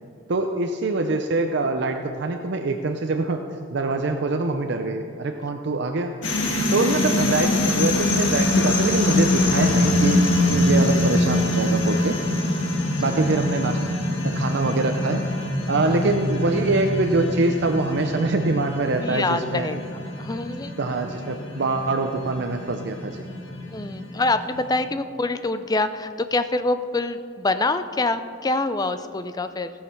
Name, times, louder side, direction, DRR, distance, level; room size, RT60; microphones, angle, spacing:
voice 1, 0.3-6.2 6.7-12.2 13.0-13.8 14.3-15.4 15.7-19.7 20.8-23.3, right 3 dB, 60° right, 5 dB, 0.6 m, -24 dB
sound 1, 6.2-24.7, left 1 dB, 85° left, 2.0 m, -24 dB
voice 2, 12.8-13.4 15.9-16.1 19.0-19.8 20.2-20.7 23.7-29.7, left 2 dB, 20° left, 10 dB, 0.5 m, -26 dB
17.0 x 6.5 x 5.8 m, 2.4 s
head